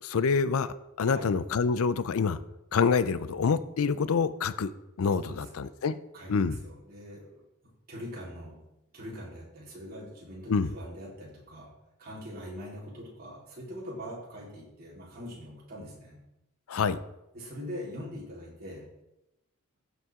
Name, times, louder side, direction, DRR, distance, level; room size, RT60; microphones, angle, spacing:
voice 1, 0.0-2.4 2.7-6.0 6.3-6.6 10.5-10.7 16.7-17.0, left 5 dB, 80° left, 14 dB, 0.5 m, -27 dB
voice 2, 5.2-5.6 6.1-8.6 8.9-11.7 12.0-16.2 17.3-18.8, equal, 45° right, -6 dB, 3.8 m, -43 dB
15.0 x 5.6 x 3.7 m, 0.93 s
head